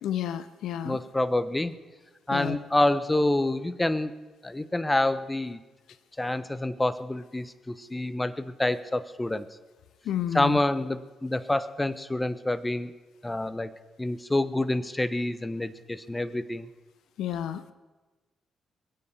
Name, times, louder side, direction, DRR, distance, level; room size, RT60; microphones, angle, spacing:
voice 1, 0.0-1.0 2.3-2.6 10.1-10.6 17.2-17.7, left 10 dB, 75° left, 13 dB, 0.6 m, -31 dB
voice 2, 0.8-1.7 2.3-4.1 4.4-5.6 6.2-9.5 10.3-12.9 13.2-13.7 14.0-16.7, left 1 dB, 15° left, 15 dB, 1.0 m, -27 dB
21.5 x 8.6 x 6.9 m, 1.2 s
hypercardioid pair, 45°, 0 cm